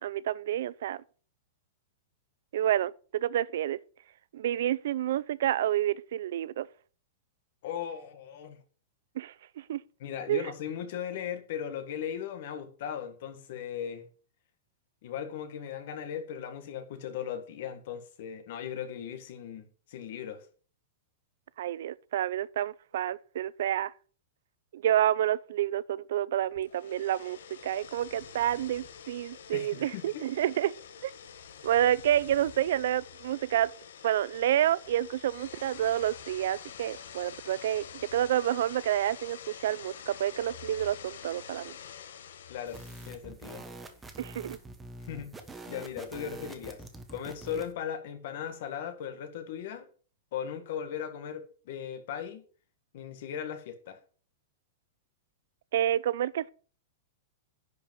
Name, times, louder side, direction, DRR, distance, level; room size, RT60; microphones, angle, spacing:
voice 1, 0.0-1.0 2.5-3.8 4.3-6.7 9.2-9.8 10.3-10.5 21.6-23.9 24.7-30.7 31.0-31.1 31.6-33.7 34.0-37.9 38.1-41.7 44.2-44.6 55.7-56.5, right 11 dB, 65° right, 0.5 m, -29 dB
voice 2, 7.6-8.6 10.0-14.1 15.0-20.5 29.5-30.2 42.5-43.7 45.0-45.4 45.7-46.8 47.1-49.8 50.3-52.4 52.9-54.0, left 8 dB, 55° left, 1.7 m, -38 dB
sound 1, 26.5-43.1, left 8 dB, 85° left, 1.2 m, -47 dB
sound 2, 42.7-47.7, right 2 dB, 10° right, 1.1 m, -45 dB
10.5 x 5.4 x 5.4 m
supercardioid pair, 165°, 0 cm